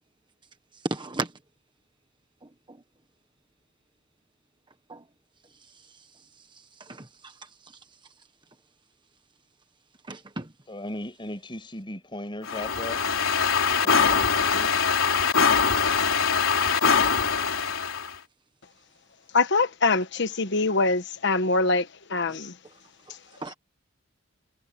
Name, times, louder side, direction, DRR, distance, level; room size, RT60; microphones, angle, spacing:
voice 1, 0.8-1.3 2.7-2.8 4.9-5.0 6.8-7.8 10.0-10.5 16.7-16.8 22.3-22.4 23.1-23.5, right 2 dB, 25° right, 1.2 m, -35 dB
voice 2, 10.7-13.0 13.8-14.7, left 1 dB, 25° left, 7.8 m, -37 dB
sound 1, 12.4-18.1, left 6 dB, 75° left, 4.0 m, -23 dB
voice 3, 19.3-22.5, left 3 dB, 55° left, 1.3 m, -24 dB
head